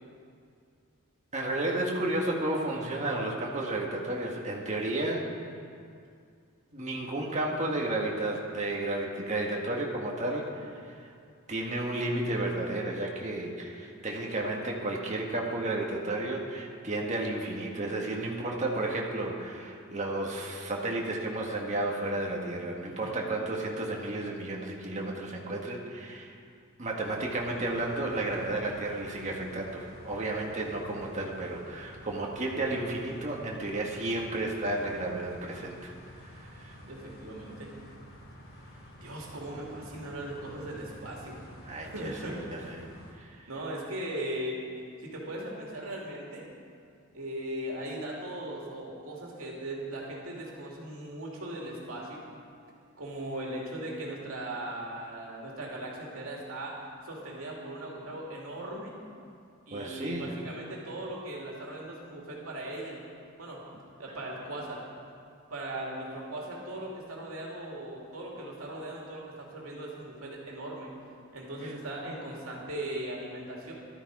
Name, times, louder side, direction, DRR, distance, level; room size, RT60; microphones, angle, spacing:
voice 1, 1.3-5.2 6.7-10.9 11.5-26.3 26.8-35.9 36.2-36.8 41.7-42.9 43.2-43.4 59.7-60.4 71.6-71.7, right 2 dB, 35° right, -1 dB, 1.7 m, -32 dB
voice 2, 22.9-23.2 36.8-37.8 39.0-41.4 41.8-42.4 43.5-44.6 45.0-46.5 47.1-52.2 53.0-56.8 57.0-58.9 59.7-63.0 63.4-63.6 64.0-64.8 65.5-70.9 71.3-73.7, right 1 dB, 75° right, -3 dB, 2.7 m, -38 dB
sound 1, 27.0-43.1, equal, 65° left, 3.0 m, -50 dB
15.0 x 13.0 x 4.9 m, 2.3 s
head